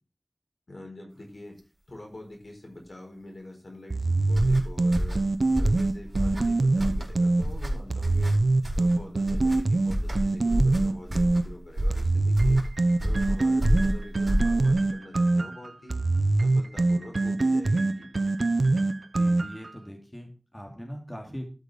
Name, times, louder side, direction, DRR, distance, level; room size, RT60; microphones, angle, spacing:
voice 1, 0.7-1.5 1.9-5.3 5.6-8.4 8.7-12.6 13.0-16.0 16.4-18.1, left 1 dB, 70° left, 1 dB, 5.0 m, -45 dB
sound 1, 3.9-7.4 7.9-11.4 11.9-19.7, right 2 dB, 75° right, 0.7 m, -24 dB
sound 2, 4.3-14.9, equal, 30° right, 4.4 m, -29 dB
voice 2, 19.1-21.5, equal, 20° left, 2 dB, 3.0 m, -41 dB
12.5 x 6.6 x 5.1 m, 0.34 s
wide cardioid pair, 60°, 0 cm